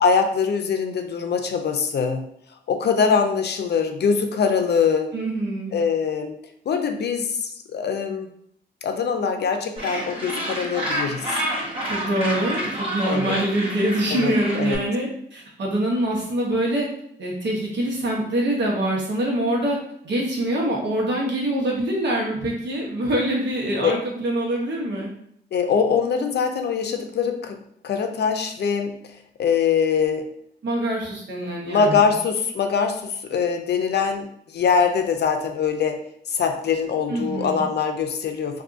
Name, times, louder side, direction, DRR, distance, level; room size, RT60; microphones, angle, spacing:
voice 1, 0.0-2.3 2.7-5.1 5.7-6.4 6.7-8.3 8.8-11.3 13.1-13.4 14.1-14.8 23.8-24.0 25.5-27.6 27.8-29.0 29.4-30.3 31.6-34.3 34.5-36.0 36.3-38.6, left 6 dB, 70° left, 6 dB, 0.5 m, -23 dB
voice 2, 5.1-5.8 11.8-16.9 17.2-19.8 20.0-25.1 30.6-32.1 37.1-37.7, right 1 dB, 75° right, -2 dB, 1.1 m, -24 dB
Gull seagull, 9.8-14.8, right 1 dB, 30° right, 1.1 m, -29 dB
2.6 x 2.5 x 3.6 m, 0.69 s
cardioid pair, 90°, 18 cm